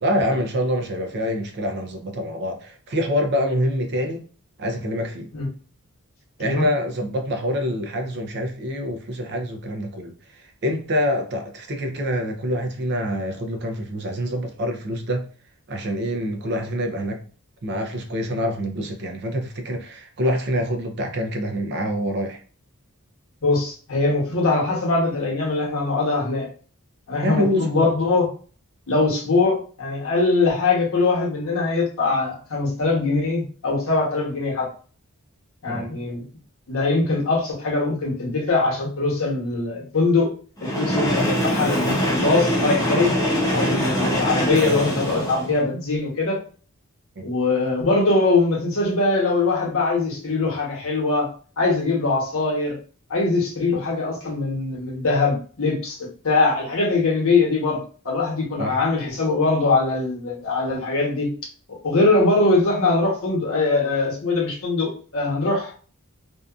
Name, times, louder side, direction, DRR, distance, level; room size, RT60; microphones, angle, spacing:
voice 1, 0.0-4.2 4.6-5.3 6.4-15.3 15.7-17.2 17.6-22.4 27.2-27.9 35.7-35.9 47.2-47.3 58.6-58.8, equal, 50° right, 0.5 m, -26 dB
voice 2, 23.4-26.5 27.1-28.3 28.9-34.7 35.6-36.2 36.7-40.3 40.6-43.1 43.5-46.4 47.2-51.3 51.6-52.7 53.1-56.0 56.2-57.8 58.0-61.3 61.8-65.7, left 3 dB, 65° left, 1.0 m, -22 dB
Train, 40.6-45.6, equal, 15° left, 0.7 m, -23 dB
2.6 x 2.3 x 2.4 m
head